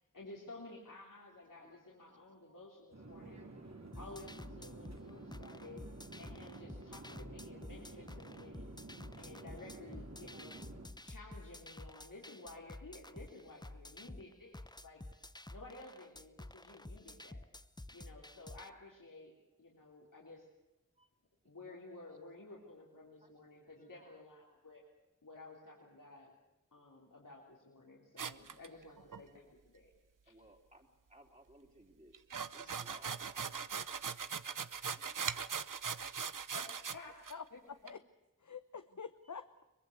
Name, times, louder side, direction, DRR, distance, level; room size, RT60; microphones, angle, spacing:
voice 1, 0.0-3.5 4.0-5.9 6.2-8.7 9.2-10.6 11.0-15.0 15.5-17.4 17.9-20.5 21.4-24.8 25.2-26.3 26.7-29.5 29.7-29.9 30.2-30.4 36.5-37.3, left 2 dB, 80° left, -3 dB, 3.7 m, -53 dB
voice 2, 1.6-2.0 2.4-2.6 3.2-3.3 3.6-4.1 21.0-21.1 21.6-21.8 22.5-22.6 23.2-23.3 23.6-24.2 30.3-32.2 32.5-33.4 34.9-35.6, right 1 dB, 25° right, 1 dB, 3.3 m, -63 dB
Conversation / Chatter / Fixed-wing aircraft airplane, 2.9-10.9, right 2 dB, 55° right, 3.3 m, -51 dB
sound 1, 3.9-18.7, left 1 dB, 15° left, 0.9 m, -51 dB
sound 2, 28.2-29.2 32.1-37.0 37.2-37.3 37.9-38.0, right 6 dB, 80° right, 0.9 m, -40 dB
voice 3, 37.3-38.0 38.4-39.6, left 6 dB, 65° left, 10 dB, 0.9 m, -47 dB
23.0 x 21.0 x 8.1 m, 0.99 s
wide cardioid pair, 45°, 32 cm